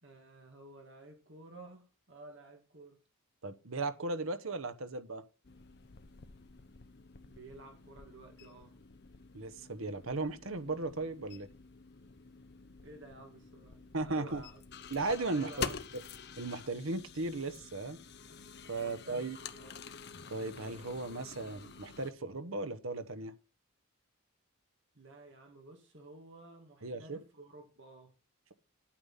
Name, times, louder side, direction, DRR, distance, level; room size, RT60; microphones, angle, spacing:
voice 1, 0.0-3.0 7.3-8.7 12.8-14.6 15.3-15.8 18.8-19.8 24.9-28.1, right 2 dB, 55° right, 2.2 m, -53 dB
voice 2, 3.4-5.2 9.3-11.5 13.9-14.4 14.9-15.7 16.4-18.0 18.7-19.4 20.3-23.3 26.8-27.2, right 3 dB, 70° right, 1.1 m, -36 dB
sound 1, 5.4-22.1, left 5 dB, 50° left, 0.8 m, -48 dB
9.8 x 8.8 x 5.7 m
head